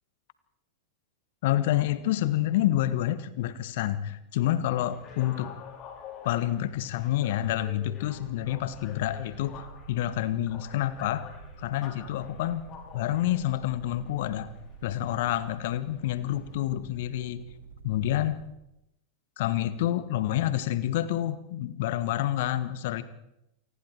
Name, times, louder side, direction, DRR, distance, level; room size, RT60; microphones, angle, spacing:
voice 1, 1.4-5.6 6.2-9.6 9.9-11.3 11.6-12.7 12.9-14.5 14.8-17.4 17.8-18.4 19.4-23.0, left 13 dB, 50° left, 15 dB, 1.4 m, -28 dB
sound 1, 4.8-16.6, left 6 dB, 30° left, 4.8 m, -49 dB
sound 2, 8.0-18.6, right 4 dB, 70° right, 3.9 m, -48 dB
28.0 x 20.0 x 4.6 m, 0.85 s
figure-of-eight pair, 90°, 0 cm